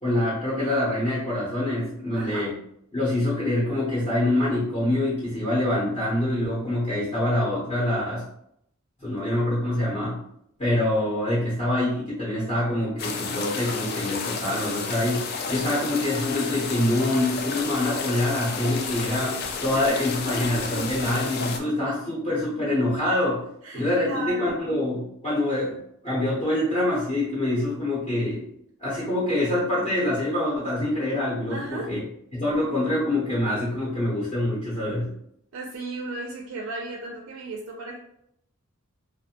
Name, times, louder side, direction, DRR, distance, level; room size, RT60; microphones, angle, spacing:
voice 1, 0.0-2.5 2.9-8.2 9.0-10.2 10.6-23.4 23.7-25.8 26.0-28.5 28.8-32.0 32.3-35.1, left 1 dB, 30° left, -9 dB, 0.8 m, -25 dB
voice 2, 2.1-2.5 20.3-20.4 23.6-24.6 31.5-31.9 35.5-38.0, right 3 dB, 80° right, -1 dB, 0.4 m, -34 dB
sound 1, 13.0-21.6, left 4 dB, 50° left, 0.3 m, -31 dB
2.5 x 2.1 x 2.8 m, 0.73 s
head